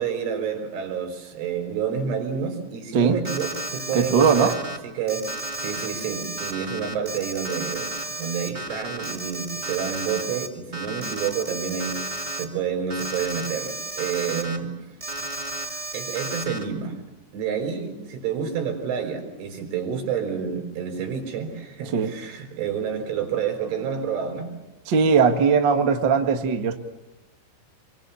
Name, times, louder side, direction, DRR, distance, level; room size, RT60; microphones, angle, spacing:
voice 1, 0.0-4.6 4.8-14.7 15.9-17.0 17.3-24.5, right 7 dB, 80° right, 4 dB, 6.8 m, -29 dB
Alarm, 3.2-4.8 5.1-10.5 10.7-12.4 12.9-14.6 15.0-16.6, right 2 dB, 30° right, 0.8 m, -33 dB
voice 2, 3.9-4.5 21.9-22.1 24.9-26.8, right 6 dB, 60° right, 5 dB, 1.1 m, -19 dB
27.0 x 24.0 x 7.2 m, 1.0 s
omnidirectional pair, 5.5 m